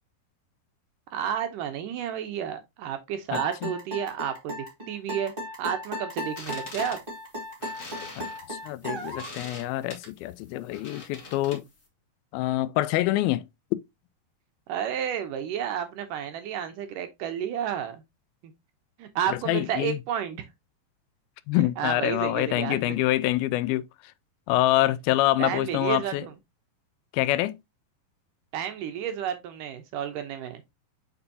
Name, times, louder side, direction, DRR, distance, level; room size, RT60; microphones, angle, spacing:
voice 1, 1.1-5.3 5.6-7.0 14.7-18.0 19.0-20.4 21.5-23.0 25.4-26.3 28.5-30.6, right 9 dB, 75° right, 2.2 m, -31 dB
voice 2, 3.3-3.7 8.0-8.1 8.4-11.6 12.3-13.5 19.5-20.0 21.5-23.9 24.5-26.2 27.1-27.6, left 16 dB, 85° left, 2.4 m, -26 dB
sound 1, 3.3-9.4, left 1 dB, 20° right, 1.8 m, -35 dB
sound 2, 6.2-11.8, left 3 dB, 40° left, 1.1 m, -44 dB
6.9 x 5.4 x 2.7 m
omnidirectional pair, 4.3 m